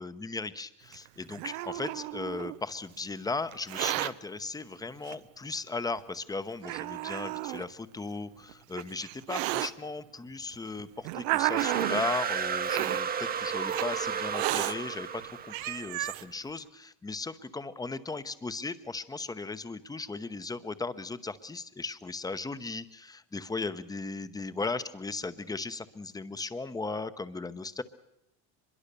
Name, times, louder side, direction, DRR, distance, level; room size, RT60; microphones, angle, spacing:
voice 1, 0.0-15.1 15.5-27.8, left 3 dB, 10° left, 13 dB, 0.9 m, -37 dB
Hiss, 0.9-2.6 3.5-4.1 5.1-5.2 6.0-6.1 6.6-7.6 8.5-9.7 10.5-12.1 12.6-13.0 13.7-13.9 14.3-14.7 15.2-15.3 15.5-16.2, right 17 dB, 90° right, 0.8 m, -32 dB
sound 1, 11.6-16.0, right 7 dB, 25° right, 1.0 m, -33 dB
24.0 x 22.0 x 6.9 m, 0.82 s
cardioid pair, 130°, 37 cm